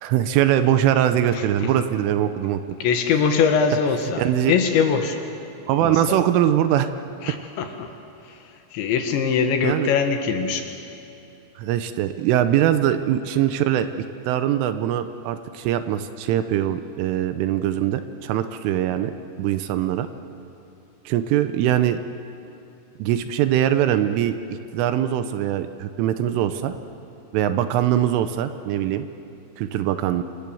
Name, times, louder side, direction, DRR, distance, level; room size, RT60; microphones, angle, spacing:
voice 1, 0.0-2.6 4.2-4.5 5.7-6.9 9.6-9.9 11.6-13.9 14.3-19.1 19.4-20.1 21.1-22.0 23.0-26.7 27.3-29.1 29.6-30.2, right 11 dB, 80° right, 10 dB, 3.2 m, -22 dB
voice 2, 1.3-1.8 2.8-5.2 5.8-6.2 7.2-7.9 8.2-10.7 26.6-26.7, left 6 dB, 70° left, 5 dB, 3.4 m, -23 dB
28.5 x 25.5 x 7.1 m, 2.8 s
omnidirectional pair, 6.0 m